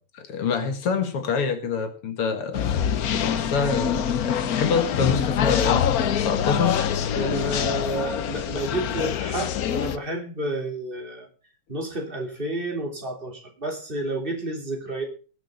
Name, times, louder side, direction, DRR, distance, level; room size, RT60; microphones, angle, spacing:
voice 1, 0.1-2.8 3.1-6.8, left 5 dB, 85° left, 7 dB, 2.5 m, -26 dB
sound 1, 2.5-10.0, left 9 dB, 60° left, 1.0 m, -25 dB
voice 2, 7.1-11.3 11.7-15.0, right 1 dB, 25° right, 2 dB, 3.3 m, -30 dB
20.0 x 6.6 x 5.5 m, 0.37 s
omnidirectional pair, 2.4 m